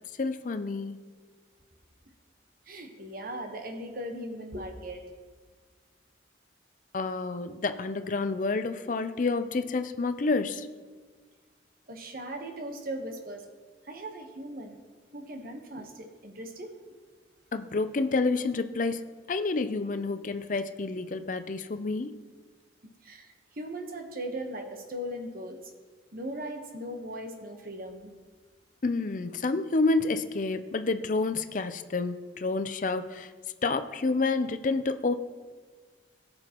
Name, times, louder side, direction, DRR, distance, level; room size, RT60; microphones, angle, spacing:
voice 1, 0.2-1.0 6.9-10.7 17.5-22.2 28.8-33.3 33.6-35.1, left 3 dB, 45° left, 10 dB, 0.5 m, -29 dB
voice 2, 2.7-5.0 11.9-13.4 13.8-14.8 15.1-16.7 23.0-25.6 26.1-28.1, right 1 dB, 50° right, 4 dB, 1.1 m, -38 dB
17.0 x 7.9 x 3.0 m, 1.5 s
head